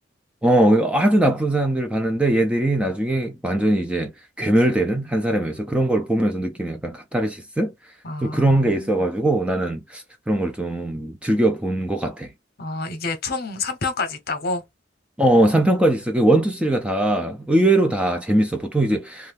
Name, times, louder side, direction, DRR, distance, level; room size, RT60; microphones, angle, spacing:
voice 1, 0.4-7.7 8.2-12.3 15.2-19.3, right 1 dB, 5° right, 0.4 m, -21 dB
voice 2, 8.0-9.0 12.6-14.6, left 3 dB, 50° left, 0.8 m, -28 dB
2.6 x 2.3 x 3.4 m
head